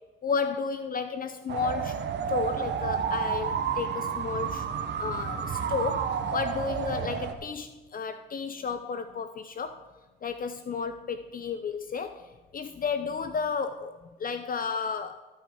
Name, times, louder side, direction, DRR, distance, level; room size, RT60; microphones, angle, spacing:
voice 1, 0.2-2.0 2.3-4.7 5.0-9.9 10.2-13.9 14.2-15.2, left 5 dB, 45° left, 9 dB, 0.7 m, -32 dB
sound 1, 1.5-7.3, right 7 dB, 55° right, 1.3 m, -30 dB
15.0 x 5.6 x 5.7 m, 1.2 s
cardioid pair, 90°, 21 cm